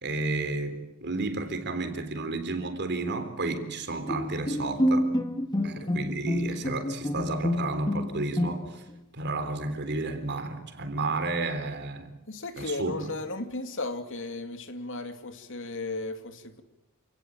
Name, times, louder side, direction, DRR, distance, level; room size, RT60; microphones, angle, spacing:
voice 1, 0.0-5.2 5.6-8.8 9.1-12.1 12.6-13.1, right 3 dB, 50° right, 3.6 m, -32 dB
Bowed string instrument, 4.1-8.9, left 1 dB, 20° left, 1.8 m, -28 dB
voice 2, 5.6-6.0 12.3-16.6, left 2 dB, 60° left, 2.6 m, -35 dB
28.5 x 18.0 x 9.0 m
head